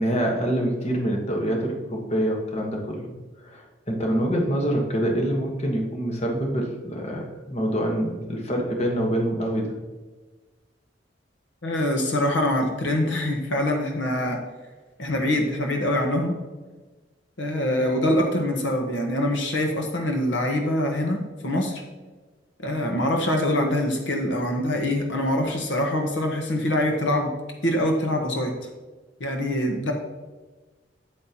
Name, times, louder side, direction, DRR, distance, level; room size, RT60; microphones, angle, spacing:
voice 1, 0.0-3.1 3.4-9.7, right 1 dB, 35° left, 1 dB, 1.3 m, -26 dB
voice 2, 11.6-14.4 15.0-16.4 17.4-21.8 22.6-27.3 27.6-28.5 29.2-29.9, left 1 dB, 80° left, 3 dB, 1.2 m, -24 dB
8.7 x 8.6 x 2.9 m, 1.3 s
head